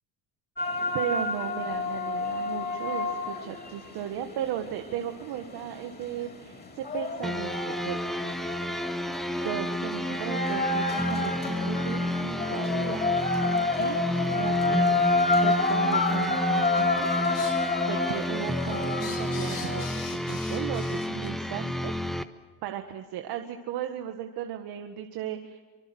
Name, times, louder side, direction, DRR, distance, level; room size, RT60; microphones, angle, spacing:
sound 1, 0.6-19.9, left 3 dB, 25° left, 6.4 m, -30 dB
voice 1, 0.9-8.7 9.4-13.4 13.8-14.0 14.3-14.9 15.4-17.1 17.9-20.0 20.3-21.9 22.6-25.6, right 10 dB, 80° right, 5 dB, 1.7 m, -36 dB
sound 2, 5.2-5.3 6.1-6.3 6.9-7.0 7.5-7.6 8.3-8.4 9.4-9.5 10.1-10.2 10.7-10.8 11.6-11.7 12.4-12.6 13.3-13.4 14.1-14.2 15.0-15.1 16.1-16.4 16.7-17.7 18.1-21.3, left 6 dB, 70° left, 6.9 m, -45 dB
sound 3, 7.2-22.2, left 1 dB, ahead, 1.3 m, -30 dB
25.0 x 24.5 x 7.9 m, 1.3 s
cardioid pair, 110°, 38 cm